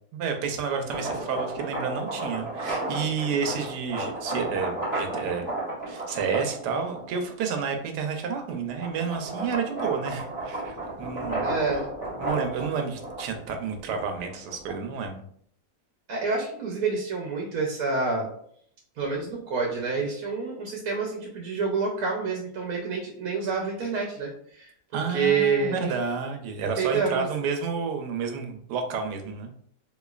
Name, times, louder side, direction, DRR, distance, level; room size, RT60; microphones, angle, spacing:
voice 1, 0.1-5.5 5.9-11.5 12.2-15.2 24.9-29.5, right 5 dB, 85° right, 5 dB, 1.2 m, -30 dB
sound 1, 0.9-7.3 7.9-15.0, right 2 dB, 15° left, 1.0 m, -33 dB
voice 2, 11.4-11.8 16.1-18.3 19.0-25.7 26.8-27.3, right 4 dB, 65° right, -1 dB, 1.0 m, -28 dB
3.6 x 3.0 x 2.3 m, 0.64 s
omnidirectional pair, 1.8 m